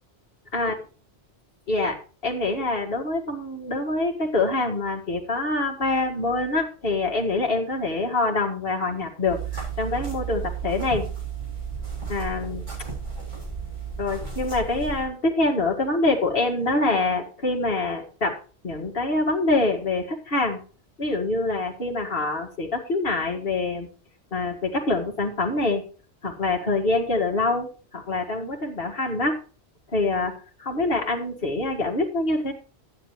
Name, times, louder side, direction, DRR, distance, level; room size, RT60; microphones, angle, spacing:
voice 1, 2.2-11.1 12.1-12.7 14.0-18.4 18.6-20.6 21.0-23.9 24.3-25.8 26.2-29.4 29.9-30.3 30.6-32.5, left 2 dB, 60° left, 0 dB, 2.2 m, -25 dB
sound 1, 9.2-15.0, right 6 dB, 40° right, 7.0 m, -33 dB
12.5 x 9.7 x 3.1 m, 0.38 s
omnidirectional pair, 1.1 m